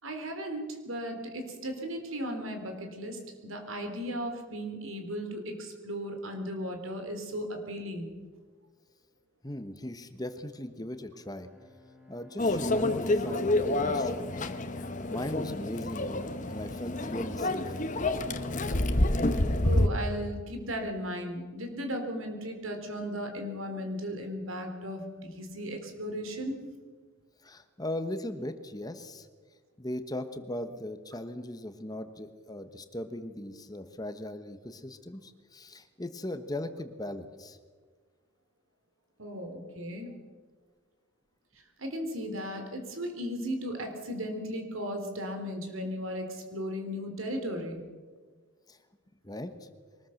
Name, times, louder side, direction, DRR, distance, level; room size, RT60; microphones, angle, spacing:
voice 1, 0.0-8.1 19.6-26.6 39.2-40.2 41.8-47.8, equal, 90° right, 5 dB, 3.7 m, -36 dB
voice 2, 9.4-11.5 12.1-14.5 15.1-17.8 27.4-29.3 29.8-37.6 48.7-48.8 49.2-49.5, left 1 dB, 20° left, 9 dB, 1.2 m, -38 dB
Bowed string instrument, 11.0-16.4, left 3 dB, ahead, 4.0 m, -57 dB
Microwave oven, 12.4-19.9, left 1 dB, 40° left, 1.2 m, -28 dB
23.0 x 20.0 x 6.5 m, 1.5 s
head